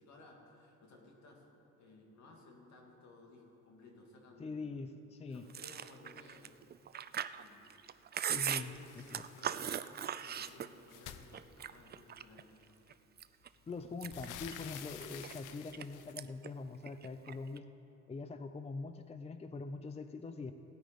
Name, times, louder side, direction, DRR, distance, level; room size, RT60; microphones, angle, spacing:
voice 1, 0.0-1.4 1.8-4.7 5.3-6.6 7.3-8.9 9.3-12.8 15.0-15.2, left 2 dB, 65° left, 1 dB, 2.4 m, -58 dB
voice 2, 4.4-5.5 8.2-9.2 13.7-17.7 18.1-20.5, left 3 dB, 20° left, 9 dB, 0.5 m, -43 dB
Chewing mastication, 5.5-11.0 11.3-12.4 12.9-13.5 13.8-15.8 16.2-16.5 16.8-17.6, right 9 dB, 35° right, 0.4 m, -39 dB
sound 1, 8.7-9.7 10.0-12.0 12.9-13.0 13.4-16.1, left 10 dB, 90° left, 0.7 m, -51 dB
17.0 x 8.9 x 5.3 m, 2.9 s
cardioid pair, 90°, 30 cm